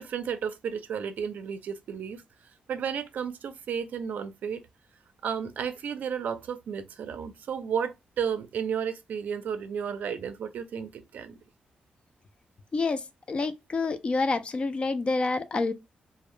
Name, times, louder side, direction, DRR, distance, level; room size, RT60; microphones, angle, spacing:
voice 1, 0.0-2.2 2.7-4.6 5.2-11.4, right 7 dB, 75° right, 0.4 m, -33 dB
voice 2, 12.7-15.7, left 3 dB, 40° left, 0.4 m, -28 dB
2.1 x 2.0 x 3.0 m
cardioid pair, 85°, 3 cm